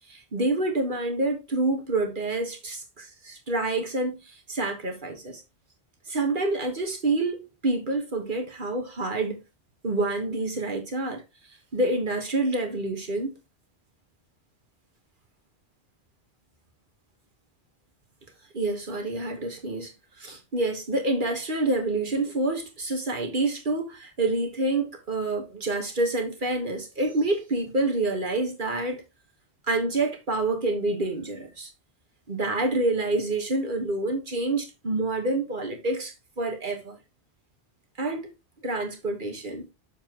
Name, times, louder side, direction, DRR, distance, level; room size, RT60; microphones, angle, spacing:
voice 1, 0.1-5.4 6.1-9.4 9.8-11.2 11.7-13.3 18.5-29.0 29.7-31.7 32.3-37.0 38.0-38.3 38.6-39.7, right 2 dB, 50° right, 1.5 m, -27 dB
7.0 x 6.9 x 3.0 m
omnidirectional pair, 1.1 m